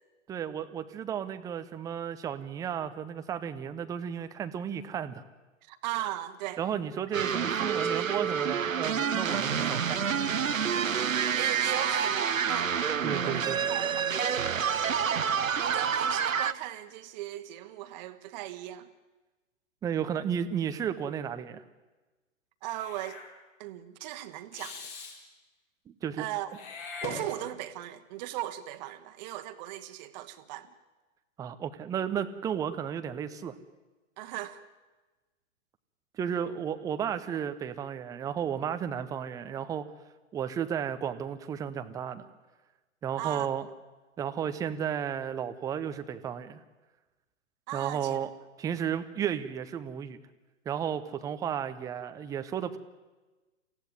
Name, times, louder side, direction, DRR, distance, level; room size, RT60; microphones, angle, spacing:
voice 1, 0.3-5.2 6.6-10.0 13.0-13.6 19.8-21.6 25.9-26.2 31.4-33.5 36.2-39.9 40.3-42.3 43.0-43.7 44.2-46.6 47.7-48.3 48.6-50.2 50.7-52.8, right 8 dB, 10° right, 10 dB, 0.7 m, -33 dB
voice 2, 5.7-6.6 7.1-7.2 7.6-8.5 10.7-12.7 13.2-14.1 15.5-18.9 22.6-23.2 23.6-24.9 26.2-26.6 27.0-30.7 34.2-34.6 43.2-43.5 47.7-48.2, right 14 dB, 35° right, 9 dB, 1.5 m, -38 dB
sound 1, 7.1-16.5, right 7 dB, 75° right, 0.9 m, -28 dB
Meow / Hiss, 22.7-23.3 24.5-25.2 26.5-27.7, left 3 dB, 40° left, 4.7 m, -41 dB
24.0 x 16.0 x 9.7 m, 1.2 s
figure-of-eight pair, 115°, 40 cm